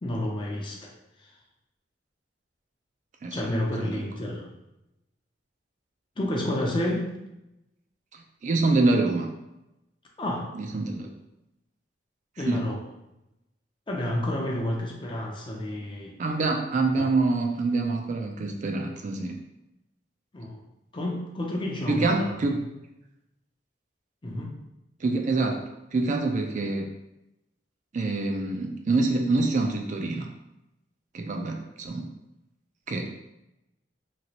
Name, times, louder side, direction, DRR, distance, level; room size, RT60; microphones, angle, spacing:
voice 1, 0.0-0.9 3.3-4.5 6.2-7.1 10.2-10.6 12.4-12.8 13.9-16.2 17.0-17.1 20.3-20.6 20.9-22.2 24.2-24.6, left 1 dB, 25° left, -1 dB, 0.5 m, -30 dB
voice 2, 8.1-9.3 10.5-11.1 12.4-12.7 16.2-19.3 21.9-22.7 25.0-25.6 25.9-26.9 27.9-30.3 31.1-32.1 32.9-33.1, right 3 dB, 45° right, 3 dB, 0.4 m, -26 dB
3.0 x 2.9 x 2.8 m, 0.90 s
head